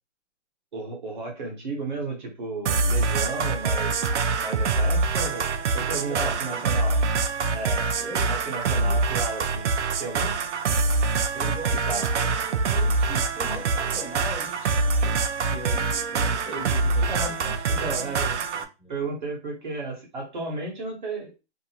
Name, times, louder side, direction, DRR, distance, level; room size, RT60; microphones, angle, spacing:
voice 1, 0.7-4.0 4.4-5.5 5.7-7.0 7.5-7.9 8.2-9.7 10.0-10.3 11.9-12.1 17.1-17.4 17.7-18.4 18.9-21.3, right 3 dB, 40° right, 1.1 m, -33 dB
sound 1, 2.7-18.7, right 4 dB, 75° right, 0.5 m, -25 dB
voice 2, 6.1-6.6 8.0-8.3 8.8-9.0 11.3-12.3 12.7-18.2 18.5-19.0, equal, 5° left, 0.6 m, -39 dB
2.7 x 2.5 x 2.8 m
hypercardioid pair, 175°, 36 cm